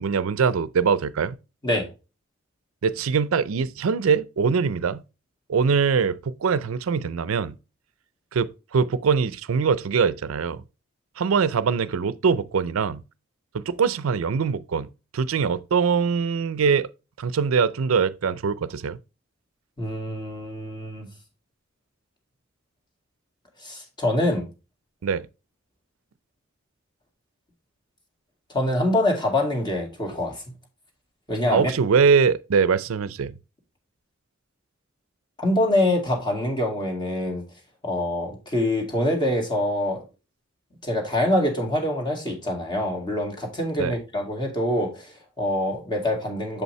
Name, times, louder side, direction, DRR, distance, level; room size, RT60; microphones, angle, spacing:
voice 1, 0.0-1.4 2.8-5.0 5.5-7.6 8.3-10.6 11.2-13.0 13.5-16.9 17.2-19.0 25.0-25.3 31.5-33.3 43.8-43.9, right 6 dB, 85° right, 0.4 m, -23 dB
voice 2, 19.8-21.1 23.6-24.5 28.5-30.4 31.3-31.7 35.4-37.4 37.8-40.0 40.8-46.6, left 1 dB, 20° left, 2.1 m, -25 dB
7.1 x 5.4 x 3.1 m
head